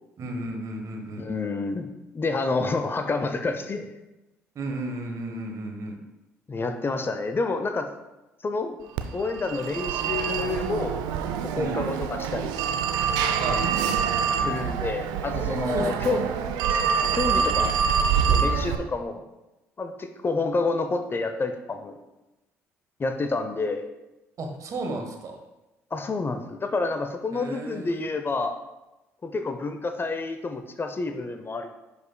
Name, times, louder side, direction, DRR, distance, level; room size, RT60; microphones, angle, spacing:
voice 1, 0.2-1.3 4.5-6.0 11.5-11.8 13.4-13.7 15.7-16.3 24.4-25.4 27.3-28.0, right 2 dB, 50° right, 3 dB, 1.3 m, -33 dB
voice 2, 1.2-3.9 6.5-7.9 8.4-8.8 9.1-11.0 11.4-12.5 14.4-16.2 16.7-17.8 18.2-19.2 19.8-22.0 23.0-23.8 25.9-28.6 29.2-31.7, left 3 dB, 30° left, 7 dB, 0.7 m, -29 dB
Telephone, 9.0-18.8, right 6 dB, 70° right, 0.5 m, -25 dB
10.5 x 5.3 x 2.3 m, 0.99 s
hypercardioid pair, 50°, 7 cm